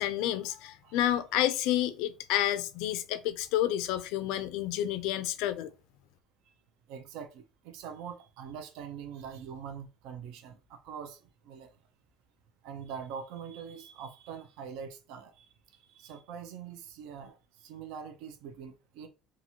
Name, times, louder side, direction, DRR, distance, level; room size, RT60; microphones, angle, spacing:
voice 1, 0.0-5.7, left 12 dB, 80° left, 0.3 m, -30 dB
voice 2, 6.9-11.8 12.6-19.1, right 7 dB, 80° right, 0.4 m, -44 dB
2.9 x 2.3 x 2.7 m
cardioid pair, 155°, 0 cm